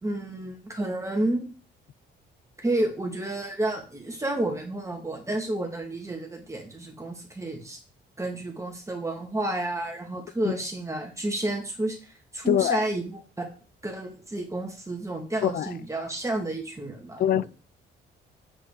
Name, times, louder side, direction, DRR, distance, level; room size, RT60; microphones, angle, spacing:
voice 1, 0.0-1.4 2.6-7.8 8.2-12.0 12.3-13.5 13.8-17.5, right 1 dB, 15° right, 2.3 m, -30 dB
voice 2, 12.5-12.8 15.4-15.7 17.2-17.5, left 11 dB, 50° left, 0.4 m, -23 dB
8.0 x 6.0 x 4.9 m
cardioid pair, 90°, 20 cm